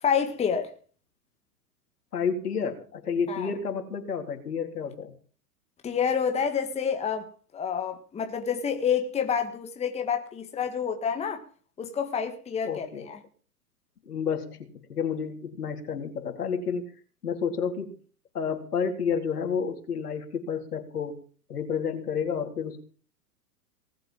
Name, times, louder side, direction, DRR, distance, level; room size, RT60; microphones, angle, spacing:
voice 1, 0.0-0.7 3.3-3.5 5.8-11.4 11.8-13.2, left 7 dB, 15° left, 1.7 m, -28 dB
voice 2, 2.1-5.1 12.6-13.1 14.1-16.9 17.2-17.9 18.3-21.2 21.5-22.8, left 6 dB, 70° left, 3.9 m, -30 dB
19.5 x 7.7 x 7.6 m
figure-of-eight pair, 115°, 47 cm